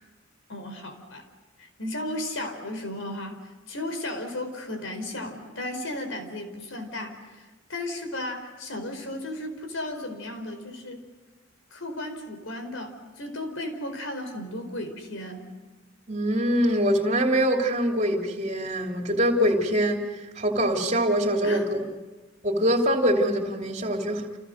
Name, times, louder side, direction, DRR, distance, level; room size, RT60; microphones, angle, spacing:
voice 1, 0.5-1.2 1.6-11.0 11.7-15.5 21.4-21.7, left 1 dB, 80° left, 4.6 m, -35 dB
voice 2, 16.1-20.1 20.4-21.8 22.4-24.4, equal, 35° right, 3.0 m, -24 dB
30.0 x 28.5 x 6.5 m
head